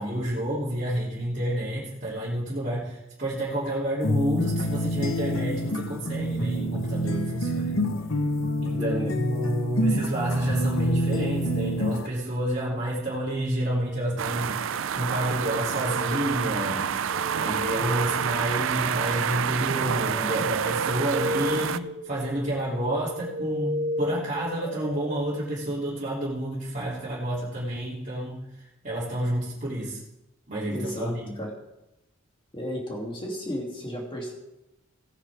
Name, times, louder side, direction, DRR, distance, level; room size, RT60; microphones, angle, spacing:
voice 1, 0.0-7.8 8.6-16.9 17.4-30.0 30.5-31.4, right 1 dB, 35° right, -10 dB, 3.1 m, -29 dB
sound 1, 4.0-12.1, equal, 80° left, 1.1 m, -27 dB
voice 2, 8.7-9.1 30.7-31.5 32.5-34.3, equal, 25° left, -1 dB, 2.8 m, -33 dB
sound 2, 14.2-21.8, right 8 dB, 70° right, 0.5 m, -28 dB
sound 3, 15.9-16.6 17.1-25.2, equal, 55° right, 1.5 m, -34 dB
17.5 x 9.9 x 3.6 m, 0.93 s
head